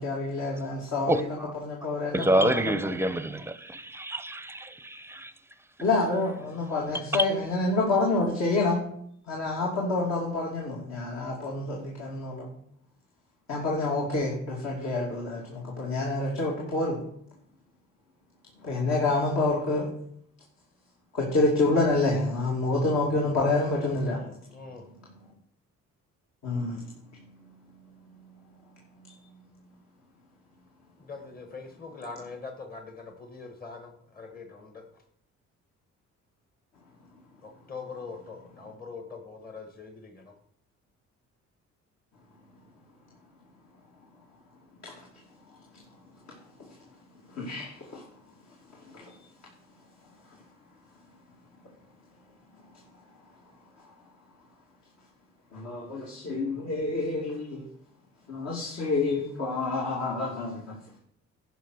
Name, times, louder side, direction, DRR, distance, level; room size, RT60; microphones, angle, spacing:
voice 1, 0.0-1.3 1.6-2.6 5.8-8.9 9.3-12.5 13.5-17.0 18.6-19.9 21.1-24.2 26.4-26.8 47.4-48.0 48.9-49.0 55.5-57.6 58.3-60.7, left 2 dB, 60° left, 2.6 m, -27 dB
voice 2, 1.1-1.5 2.1-5.3 7.1-7.3, right 1 dB, 10° right, 0.7 m, -27 dB
voice 3, 24.1-24.8 31.0-34.8 37.4-40.3, left 4 dB, 30° left, 1.5 m, -43 dB
11.0 x 5.2 x 6.3 m
cardioid pair, 90°, 30 cm